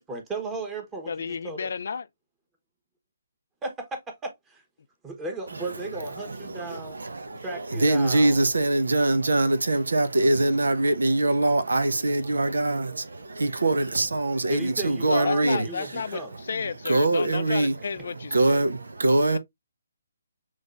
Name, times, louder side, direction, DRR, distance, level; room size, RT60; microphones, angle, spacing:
voice 1, 0.0-1.1 1.4-1.7 3.6-4.6 5.0-7.0 7.4-8.4 14.5-16.3, right 3 dB, 15° right, 1.3 m, -35 dB
voice 2, 1.1-2.1 15.1-18.6 19.3-19.4, left 6 dB, 60° left, 0.5 m, -32 dB
voice 3, 5.5-16.2 16.5-17.8 18.1-19.4, right 2 dB, 80° right, 0.9 m, -24 dB
6.3 x 3.1 x 2.5 m
figure-of-eight pair, 145°, 0 cm